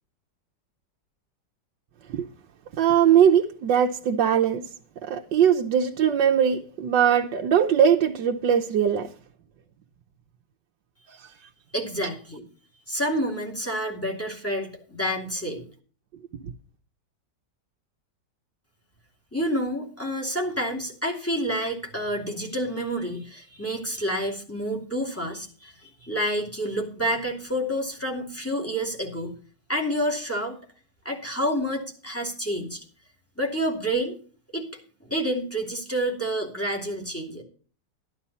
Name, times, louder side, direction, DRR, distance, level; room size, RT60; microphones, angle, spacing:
voice 1, 2.8-4.6 5.0-9.1, right 8 dB, 80° right, 1.5 m, -20 dB
voice 2, 11.7-12.4 12.9-15.6 19.3-29.3 29.7-30.6 31.0-32.8 33.4-34.2 34.5-34.7 35.1-37.4, equal, 5° left, 2.7 m, -28 dB
12.5 x 11.5 x 4.2 m
omnidirectional pair, 2.0 m